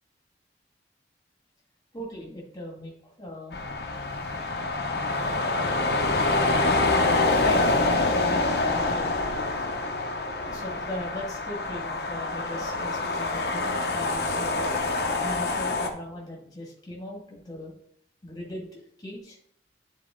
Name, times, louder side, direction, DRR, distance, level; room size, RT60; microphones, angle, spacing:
voice 1, 1.9-3.6 7.2-9.2 10.4-14.7 15.2-17.7 18.2-19.4, left 1 dB, 20° left, -2 dB, 2.0 m, -38 dB
sound 1, 3.5-15.9, left 2 dB, 65° left, 0.8 m, -26 dB
9.4 x 4.0 x 3.8 m, 0.66 s
head